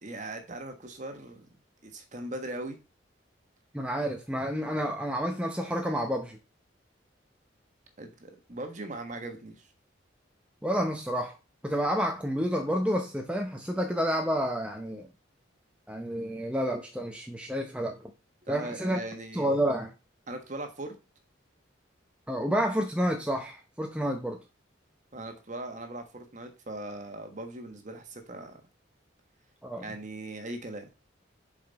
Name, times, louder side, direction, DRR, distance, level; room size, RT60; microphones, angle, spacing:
voice 1, 0.0-1.5 1.8-2.8 8.0-9.7 18.5-19.6 20.3-20.9 25.1-28.6 29.7-30.9, right 2 dB, 40° right, 1.4 m, -39 dB
voice 2, 3.7-6.4 10.6-11.3 11.6-15.1 15.9-18.0 18.5-19.0 19.3-19.9 22.3-24.4 29.6-29.9, equal, 5° right, 0.8 m, -29 dB
7.2 x 5.0 x 4.1 m
head